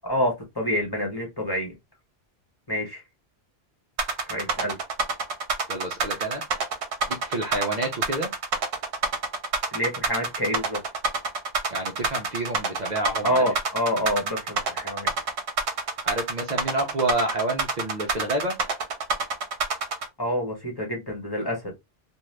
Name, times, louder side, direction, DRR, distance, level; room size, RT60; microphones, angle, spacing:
voice 1, 0.0-1.8 2.7-3.0 4.3-4.8 9.7-10.8 13.2-15.1 20.2-21.7, equal, 25° left, 0.9 m, -27 dB
sound 1, 4.0-20.1, right 3 dB, 85° right, 0.9 m, -27 dB
voice 2, 5.7-6.4 7.1-8.3 11.7-13.5 16.0-18.5, right 2 dB, 50° right, 0.6 m, -28 dB
2.6 x 2.2 x 3.1 m
omnidirectional pair, 1.1 m